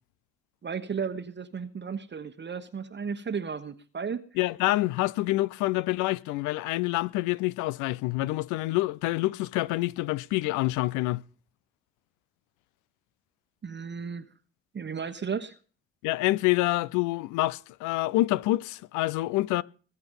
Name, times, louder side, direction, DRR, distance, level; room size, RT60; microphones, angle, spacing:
voice 1, 0.6-4.2 13.6-14.3 14.7-15.6, right 6 dB, 35° right, 1.1 m, -34 dB
voice 2, 4.4-11.2 16.0-19.6, left 18 dB, 70° left, 0.6 m, -27 dB
21.0 x 8.3 x 5.4 m
hypercardioid pair, 45°, 31 cm